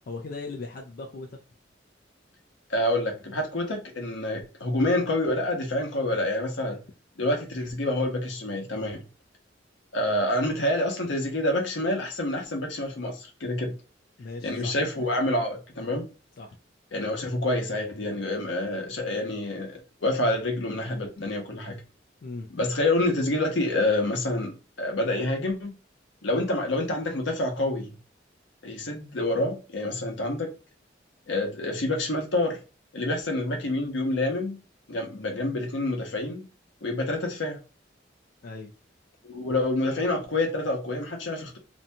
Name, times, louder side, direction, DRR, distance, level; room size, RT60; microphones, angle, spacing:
voice 1, 0.1-1.3 14.2-14.8 16.4-16.6 22.2-22.5 38.4-38.7, left 3 dB, 50° left, 0.4 m, -38 dB
voice 2, 2.7-6.8 7.2-9.0 9.9-13.7 14.4-16.1 16.9-21.8 22.5-25.7 26.2-27.9 28.6-30.5 31.3-32.6 32.9-34.6 34.9-36.5 36.8-37.6 39.2-41.6, left 1 dB, 85° left, 0.8 m, -27 dB
2.7 x 2.2 x 2.7 m
head